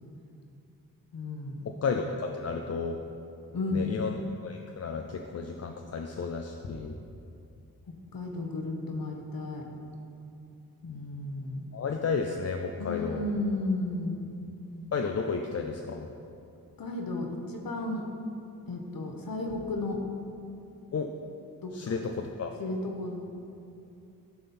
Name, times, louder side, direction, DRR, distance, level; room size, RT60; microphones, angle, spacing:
voice 1, 1.1-1.7 3.5-3.9 8.1-9.6 10.8-11.7 12.8-14.3 16.8-18.0 18.7-20.0 21.6-22.0 22.6-23.3, left 2 dB, 65° left, 2 dB, 1.1 m, -33 dB
voice 2, 1.7-3.0 3.7-4.1 4.4-6.9 11.7-13.3 14.9-16.1 20.9-21.1 21.7-22.5, left 5 dB, 40° left, 3 dB, 0.5 m, -32 dB
11.0 x 3.8 x 4.3 m, 2.7 s
cardioid pair, 55°, 38 cm